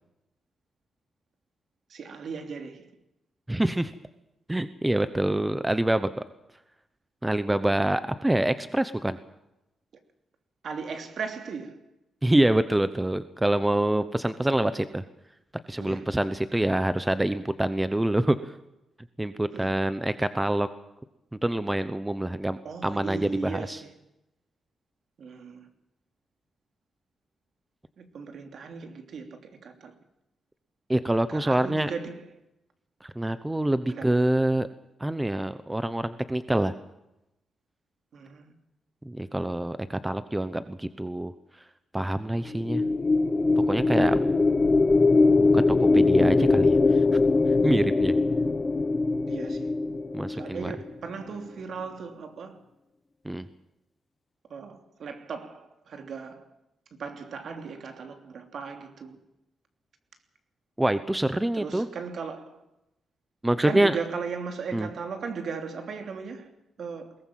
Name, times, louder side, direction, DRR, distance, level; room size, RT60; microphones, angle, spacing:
voice 1, 1.9-2.9 10.6-11.8 15.8-16.1 19.5-19.8 22.6-23.9 25.2-25.7 28.0-29.9 31.3-32.3 33.9-34.2 38.1-38.5 49.3-49.7 50.3-52.6 54.5-56.4 57.0-59.2 61.5-62.6 63.6-66.5 66.8-67.2, right 5 dB, 55° right, 3.1 m, -37 dB
voice 2, 3.5-3.9 4.5-6.2 7.2-9.2 12.2-15.0 15.7-18.5 19.2-20.7 21.4-23.8 30.9-31.9 33.0-34.7 35.0-36.7 39.0-41.3 41.9-42.8 43.7-44.2 45.4-45.6 45.9-47.0 47.6-48.1 50.1-50.7 53.2-53.5 60.8-61.9 63.4-64.0 64.7-64.9, right 1 dB, 10° right, 0.9 m, -26 dB
sound 1, 42.5-50.9, left 3 dB, 25° left, 0.9 m, -22 dB
22.0 x 18.5 x 7.6 m
wide cardioid pair, 150°, 0 cm